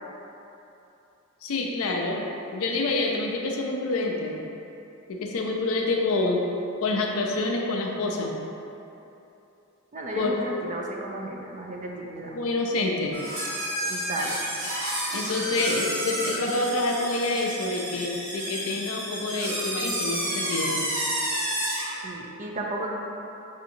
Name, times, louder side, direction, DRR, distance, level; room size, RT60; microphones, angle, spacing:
voice 1, 1.4-2.2 2.5-4.4 5.1-6.4 6.8-8.3 10.2-10.3 12.3-13.2 15.1-20.9, left 2 dB, 75° left, 0 dB, 0.5 m, -27 dB
voice 2, 9.9-12.4 13.9-14.6 22.0-22.9, right 2 dB, 35° right, -1 dB, 0.4 m, -34 dB
sound 1, 13.1-22.0, right 1 dB, 65° right, 1.1 m, -30 dB
4.9 x 2.8 x 2.6 m, 2.8 s
head